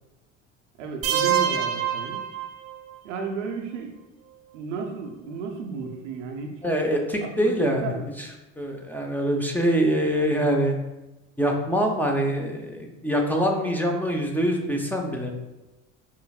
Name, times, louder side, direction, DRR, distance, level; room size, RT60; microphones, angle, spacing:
voice 1, 0.8-2.2 3.0-3.9 4.5-6.6 7.2-8.1, right 4 dB, 85° right, 2 dB, 0.6 m, -33 dB
sound 1, 1.0-3.0, right 9 dB, 40° right, 0.5 m, -26 dB
voice 2, 6.6-7.9 8.2-8.3 8.6-10.8 11.4-15.3, equal, 5° left, 1 dB, 0.6 m, -24 dB
5.5 x 2.6 x 2.3 m, 1.0 s
hypercardioid pair, 70°, 36 cm